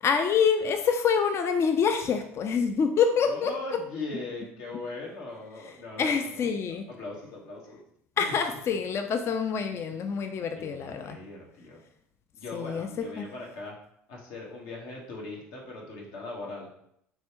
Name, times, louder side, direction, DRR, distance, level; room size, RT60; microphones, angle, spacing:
voice 1, 0.0-3.5 6.0-6.8 8.2-11.2 12.5-13.3, left 6 dB, 40° left, 7 dB, 0.4 m, -26 dB
voice 2, 3.2-6.5 6.9-7.8 9.9-10.0 10.6-11.8 12.4-13.7 14.1-16.8, left 2 dB, 65° left, -2 dB, 1.1 m, -39 dB
3.6 x 3.1 x 2.8 m, 0.71 s
hypercardioid pair, 70°, 7 cm